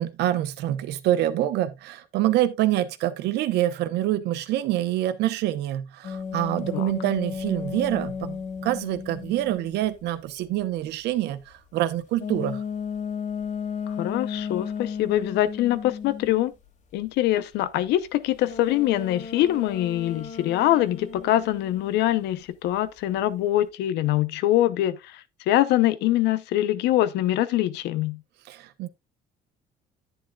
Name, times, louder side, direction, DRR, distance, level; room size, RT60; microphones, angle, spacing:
voice 1, 0.0-12.6 28.5-28.9, right 13 dB, 80° right, 0.9 m, -26 dB
sound 1, 6.0-9.9 12.2-16.5 18.5-22.3, left 6 dB, 50° left, 2.1 m, -34 dB
voice 2, 13.9-16.5 16.9-28.2, left 14 dB, 80° left, 0.8 m, -24 dB
10.0 x 8.9 x 2.3 m
cardioid pair, 110°, 17 cm